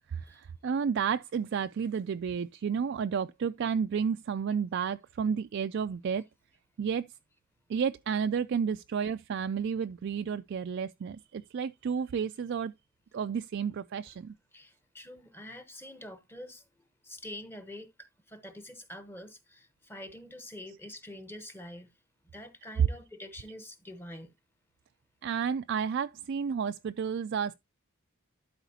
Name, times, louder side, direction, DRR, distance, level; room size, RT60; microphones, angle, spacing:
voice 1, 0.1-6.2 6.8-7.0 7.7-12.7 13.1-14.3 25.2-27.5, right 6 dB, 55° right, 0.3 m, -31 dB
voice 2, 14.5-16.6 17.0-21.9 22.3-24.3, left 1 dB, 10° left, 0.9 m, -46 dB
12.0 x 5.0 x 2.7 m
head